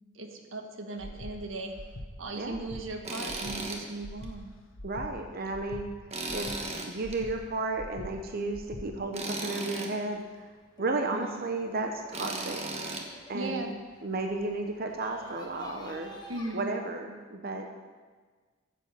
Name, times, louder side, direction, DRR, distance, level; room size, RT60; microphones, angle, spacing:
voice 1, 0.1-1.8 2.2-4.5 11.1-11.4 13.3-13.7 16.3-16.7, right 2 dB, 90° right, 4 dB, 1.4 m, -37 dB
Breathing, 1.0-1.3 1.7-2.1 2.5-2.8 3.2-3.6 4.0-4.3 4.7-5.1 5.5-5.8 6.2-6.6 7.0-7.3 7.7-8.1 8.5-8.8, left 1 dB, 85° left, 1.3 m, -43 dB
voice 2, 2.4-2.7 4.8-5.9 6.3-6.5 6.9-10.5 10.8-12.6 13.3-13.7 14.0-16.1 16.5-17.7, right 2 dB, 50° right, 4 dB, 0.9 m, -33 dB
Tools, 3.0-3.8 4.2-4.3 6.1-7.2 9.1-9.9 12.1-13.0, right 2 dB, 35° right, 1.4 m, -35 dB
sound 1, 10.1-16.5, left 2 dB, 20° left, 1.4 m, -52 dB
14.5 x 7.6 x 5.6 m, 1.5 s
head